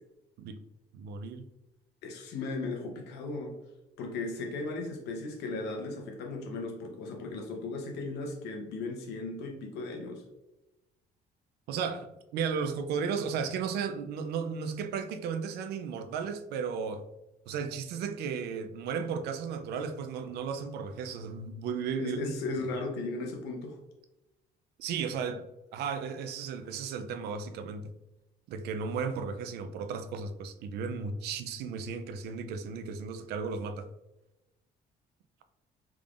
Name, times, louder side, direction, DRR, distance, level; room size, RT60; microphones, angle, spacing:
voice 1, 0.9-1.5 11.7-17.0 17.5-22.3 24.8-25.4 25.7-27.9 28.5-33.9, right 6 dB, 75° right, 0.4 m, -34 dB
voice 2, 2.0-3.5 4.0-10.2 22.0-23.8, left 3 dB, 85° left, 0.9 m, -36 dB
3.6 x 3.4 x 2.4 m
cardioid pair, 110°, 17 cm